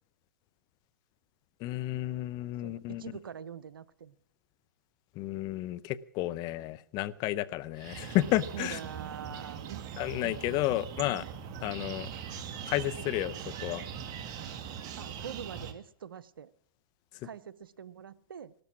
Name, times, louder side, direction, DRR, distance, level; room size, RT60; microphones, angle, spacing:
voice 1, 1.6-3.1 5.1-8.8 10.0-11.2 11.6-12.1 12.7-13.9 17.2-17.3, left 15 dB, 35° left, 17 dB, 0.7 m, -32 dB
voice 2, 2.6-4.2 8.5-10.5 14.9-16.5 17.2-18.5, right 8 dB, 85° right, 16 dB, 0.8 m, -44 dB
sound 1, 7.8-15.7, right 8 dB, 35° right, 1.8 m, -41 dB
17.5 x 13.0 x 6.1 m, 0.65 s
hypercardioid pair, 125°, 11 cm